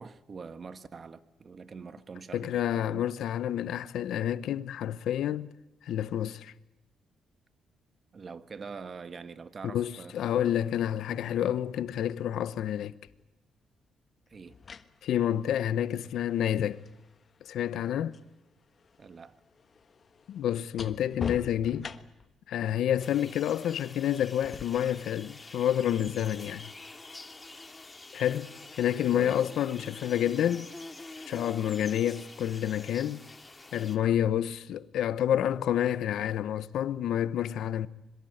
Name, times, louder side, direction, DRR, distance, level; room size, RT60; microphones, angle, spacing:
voice 1, 0.0-3.1 8.1-10.1 14.3-14.6 19.0-19.4 29.1-29.4, right 5 dB, 45° right, 1.6 m, -44 dB
voice 2, 2.3-5.5 5.9-6.5 9.6-12.9 15.0-16.8 17.4-18.2 20.3-21.9 22.5-26.7 28.1-30.7 31.3-33.2 33.7-37.9, left 10 dB, 80° left, 1.0 m, -29 dB
sound 1, 13.1-13.2 14.3-18.3 18.6-22.4 24.4-24.6, left 5 dB, 45° left, 1.4 m, -44 dB
sound 2, 23.0-34.0, left 2 dB, 20° left, 2.4 m, -47 dB
26.0 x 22.5 x 8.0 m
cardioid pair, 85°, 0 cm